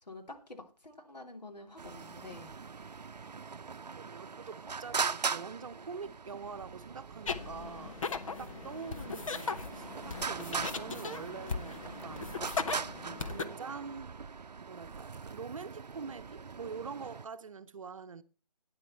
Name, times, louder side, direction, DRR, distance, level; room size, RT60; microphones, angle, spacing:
voice 1, 0.0-2.5, left 2 dB, 90° left, 3.3 m, -48 dB
Traffic noise roadway noise, 1.8-17.3, right 5 dB, 85° right, 0.6 m, -41 dB
voice 2, 3.9-8.0 8.4-12.3 12.7-14.2 14.6-18.2, right 5 dB, 55° right, 0.9 m, -45 dB
sound 1, 7.3-13.4, left 4 dB, 55° left, 1.1 m, -38 dB
12.0 x 9.8 x 4.4 m
figure-of-eight pair, 155°, 21 cm